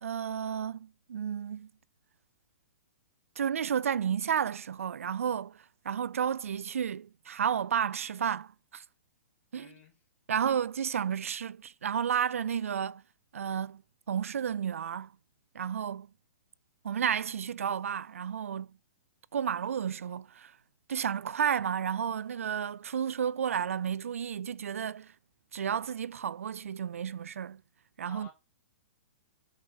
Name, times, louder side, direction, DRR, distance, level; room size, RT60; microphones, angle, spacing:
voice 1, 0.0-1.7 3.4-8.8 9.5-9.7 10.3-13.0 13.3-13.8 14.1-15.1 15.5-16.1 16.8-18.7 19.3-20.5 20.9-25.1 25.5-27.6 28.0-28.3, right 8 dB, 75° right, 0.5 m, -32 dB
voice 2, 9.5-10.0 28.1-28.3, left 5 dB, 25° left, 3.9 m, -52 dB
6.1 x 5.1 x 6.8 m
hypercardioid pair, 120°, 8 cm